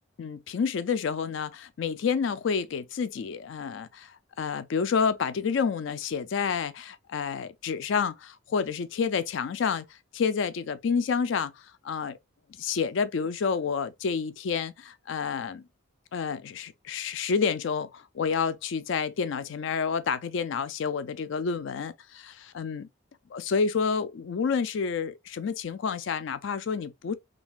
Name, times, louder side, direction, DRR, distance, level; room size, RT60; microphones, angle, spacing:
voice 1, 0.2-12.2 12.6-15.6 16.1-22.9 23.3-27.1, left 6 dB, 60° left, 0.3 m, -29 dB
3.7 x 2.4 x 2.4 m
head